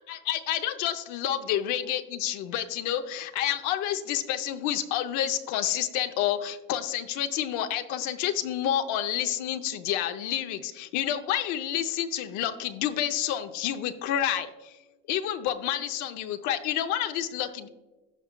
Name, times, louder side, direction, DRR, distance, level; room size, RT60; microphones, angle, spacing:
voice 1, 0.1-14.7 15.1-17.7, left 11 dB, 80° left, 7 dB, 0.7 m, -29 dB
15.0 x 5.5 x 2.2 m, 1.1 s
cardioid pair, 105°, 29 cm